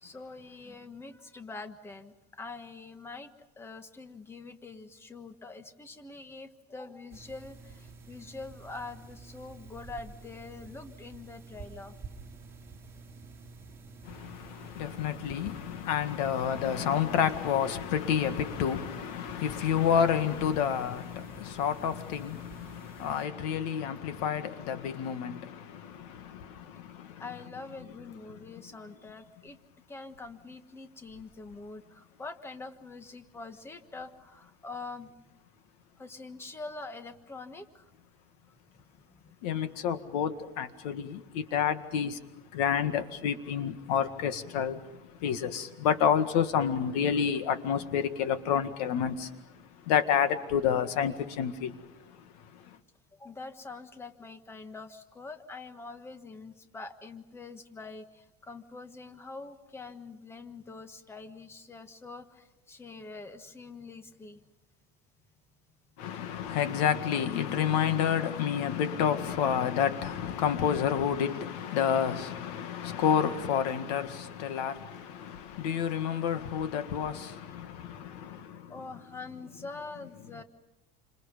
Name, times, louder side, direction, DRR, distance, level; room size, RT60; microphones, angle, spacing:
voice 1, 0.0-12.0 13.9-14.0 25.9-26.0 27.2-29.6 29.9-35.1 36.0-37.9 39.2-39.3 41.0-41.2 51.2-51.3 53.2-64.4 77.9-80.4, left 3 dB, 10° left, 1.4 m, -45 dB
sound 1, 7.1-23.3, right 4 dB, 15° right, 4.4 m, -49 dB
voice 2, 14.0-27.2 39.4-42.2 42.5-44.9 45.1-49.4 49.9-51.8 52.5-52.8 66.0-78.7, left 8 dB, 90° left, 2.0 m, -29 dB
29.0 x 26.5 x 5.4 m
cardioid pair, 150°, 20 cm